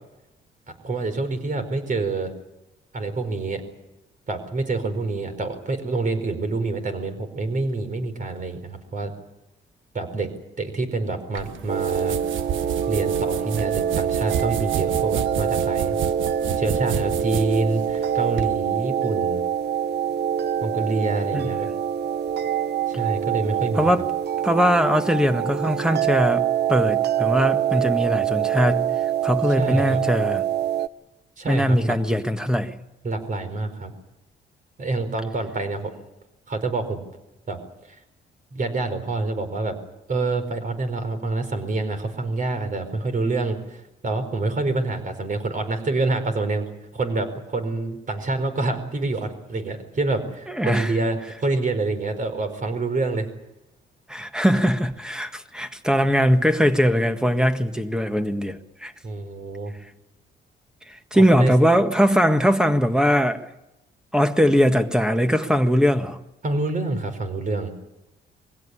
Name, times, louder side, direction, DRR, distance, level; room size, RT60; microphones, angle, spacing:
voice 1, 0.8-2.3 2.9-3.6 4.3-9.1 9.9-10.3 10.6-12.2 12.9-16.0 16.6-19.4 20.6-21.7 22.9-23.9 29.6-30.0 31.4-32.0 33.0-33.9 34.8-35.9 36.5-37.0 37.5-37.6 38.5-39.7 40.1-46.6 46.9-53.3 59.0-59.7 61.1-61.5 66.4-67.7, right 3 dB, 40° right, 4.7 m, -27 dB
sound 1, 11.3-18.5, right 9 dB, 75° right, 1.2 m, -31 dB
sound 2, 11.7-30.9, right 9 dB, 55° right, 0.8 m, -25 dB
voice 2, 24.4-28.9 29.2-30.4 31.5-32.7 50.5-50.9 54.1-58.9 60.9-63.5 64.1-66.2, equal, 5° right, 1.7 m, -21 dB
23.0 x 17.0 x 9.9 m
cardioid pair, 90°, 20 cm